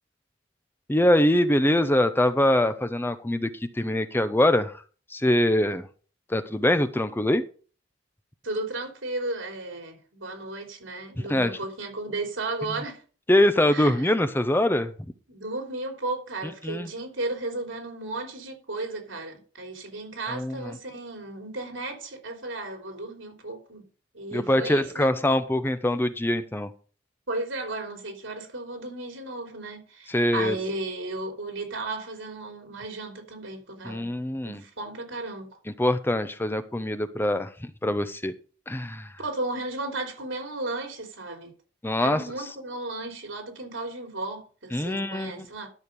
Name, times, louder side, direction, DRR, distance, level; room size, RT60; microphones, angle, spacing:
voice 1, 0.9-3.5 3.7-4.8 5.1-5.9 6.3-7.4 11.3-11.6 13.3-14.9 16.6-16.9 20.3-20.8 24.3-26.7 30.1-30.6 33.8-34.6 35.8-38.3 38.7-39.1 41.8-42.2 44.7-45.5, left 1 dB, 10° left, 0.7 m, -23 dB
voice 2, 8.4-13.0 13.7-14.1 15.3-23.9 24.1-25.1 27.3-34.1 34.4-35.6 39.2-41.5 42.0-45.7, right 2 dB, 85° right, 3.4 m, -34 dB
12.5 x 6.5 x 5.2 m
head